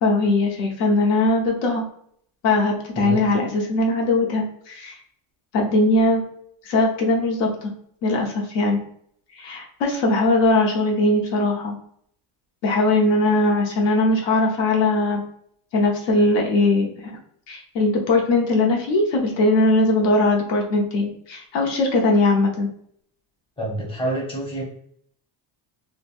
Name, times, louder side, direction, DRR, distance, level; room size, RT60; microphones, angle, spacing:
voice 1, 0.0-1.8 2.4-5.0 5.5-6.2 6.6-7.7 8.0-8.8 9.4-11.8 12.6-15.2 15.7-17.1 17.5-22.7, left 2 dB, 65° left, 0 dB, 0.8 m, -20 dB
voice 2, 23.6-24.6, right 1 dB, 10° left, -4 dB, 0.8 m, -27 dB
3.2 x 2.1 x 2.4 m, 0.65 s
cardioid pair, 145°, 48 cm